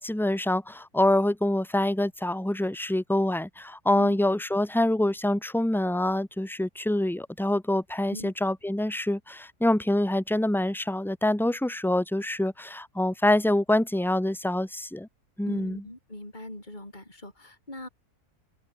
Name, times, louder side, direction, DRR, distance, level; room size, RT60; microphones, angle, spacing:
voice 1, 0.0-15.1 15.4-15.8, left 1 dB, ahead, 2.1 m, -26 dB
voice 2, 15.4-17.9, left 1 dB, 30° left, 6.6 m, -41 dB
omnidirectional pair, 1.7 m